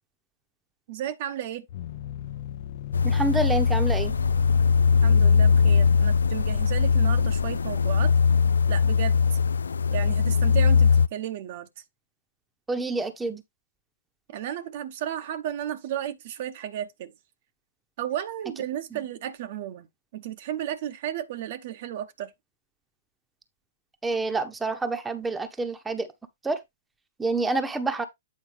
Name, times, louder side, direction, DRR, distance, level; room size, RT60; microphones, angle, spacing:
voice 1, 0.9-1.7 5.0-8.1 8.7-9.4 9.9-11.7 14.3-17.1 18.0-19.9 20.1-22.3, right 11 dB, 50° right, 0.9 m, -33 dB
sound 1, 1.7-8.9, left 10 dB, 50° left, 0.8 m, -37 dB
sound 2, 2.9-11.1, left 5 dB, 80° left, 0.3 m, -20 dB
voice 2, 3.0-4.2 12.7-13.4 18.9-19.0 24.0-26.1 26.4-26.6 27.2-28.1, right 3 dB, 10° right, 1.0 m, -28 dB
8.6 x 4.7 x 3.3 m
hypercardioid pair, 125°, 0 cm